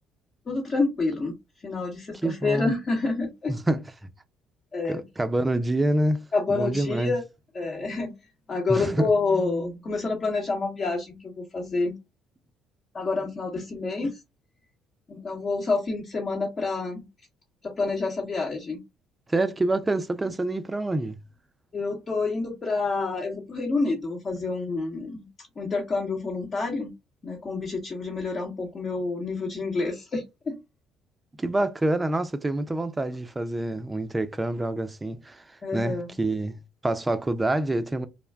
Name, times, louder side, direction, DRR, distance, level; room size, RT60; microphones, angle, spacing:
voice 1, 0.5-1.3 1.6-3.5 4.7-5.0 6.3-7.2 7.5-8.2 8.5-11.9 12.9-14.2 15.1-17.0 17.6-18.8 21.7-25.3 25.6-26.9 27.2-30.6 35.6-36.1, left 3 dB, 40° left, 0.9 m, -28 dB
voice 2, 2.2-2.7 3.5-3.8 4.9-7.1 8.7-9.1 19.3-21.2 31.4-35.4 35.7-36.6 36.8-38.1, right 2 dB, 20° right, 0.5 m, -26 dB
2.4 x 2.2 x 3.3 m
hypercardioid pair, 60°, 0 cm